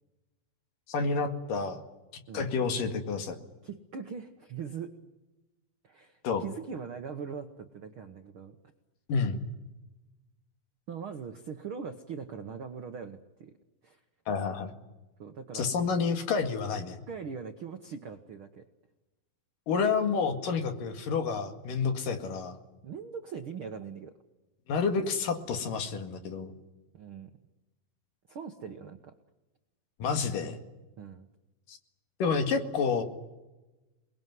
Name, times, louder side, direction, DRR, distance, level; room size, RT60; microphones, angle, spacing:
voice 1, 0.9-1.8 2.3-3.4 6.2-6.4 9.1-9.5 14.3-14.7 15.5-17.0 19.7-22.6 24.7-26.5 30.0-30.6 31.7-31.8 32.2-33.0, left 5 dB, 65° left, 7 dB, 3.6 m, -29 dB
voice 2, 3.6-4.9 5.8-8.6 10.9-13.5 13.8-14.0 15.2-15.7 17.1-18.6 22.8-24.1 26.9-27.3 28.3-29.1 31.0-31.3, right 6 dB, 60° right, 6 dB, 1.3 m, -41 dB
28.5 x 21.0 x 9.5 m, 1.1 s
omnidirectional pair, 4.2 m